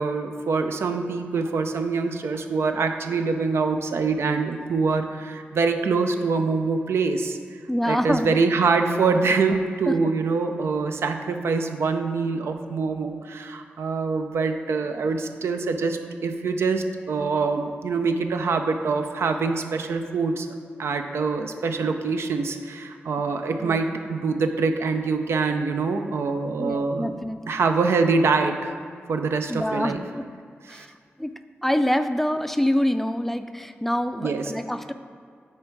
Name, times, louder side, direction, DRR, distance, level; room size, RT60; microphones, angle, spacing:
voice 1, 0.0-7.4 7.9-20.5 20.8-28.7 29.1-30.0 30.7-30.9 34.2-34.5, right 4 dB, 85° right, 6 dB, 0.5 m, -24 dB
voice 2, 7.7-8.4 9.5-9.6 9.9-10.0 23.6-23.8 26.6-27.4 29.5-30.2 30.7-31.3 31.6-34.9, equal, 5° left, 9 dB, 0.4 m, -26 dB
8.6 x 4.5 x 4.6 m, 2.2 s
cardioid pair, 75°, 4 cm